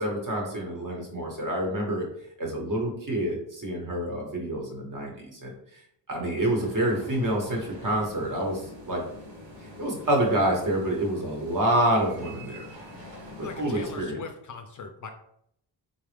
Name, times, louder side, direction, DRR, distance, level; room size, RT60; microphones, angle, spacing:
voice 1, 0.0-2.1 2.4-5.5 6.1-9.0 9.6-12.6 13.6-14.2, right 1 dB, 45° right, 0 dB, 1.1 m, -27 dB
sound 1, 6.3-14.0, left 1 dB, 90° right, 1.2 m, -45 dB
voice 2, 13.4-15.1, left 4 dB, 45° left, 5 dB, 0.4 m, -39 dB
3.9 x 2.4 x 3.3 m, 0.70 s
wide cardioid pair, 140°, 44 cm